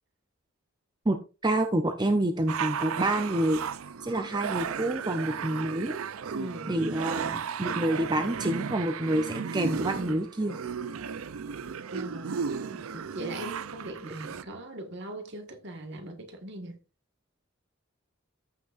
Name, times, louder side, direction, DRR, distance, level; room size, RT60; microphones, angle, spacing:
voice 1, 1.4-3.6 4.0-6.0 6.7-10.6, right 1 dB, 20° right, 0.6 m, -28 dB
sound 1, 2.5-14.4, right 6 dB, 80° right, 0.5 m, -35 dB
voice 2, 6.3-6.8 11.9-12.4 12.8-16.8, right 1 dB, 55° right, 1.6 m, -40 dB
14.0 x 6.2 x 2.5 m
head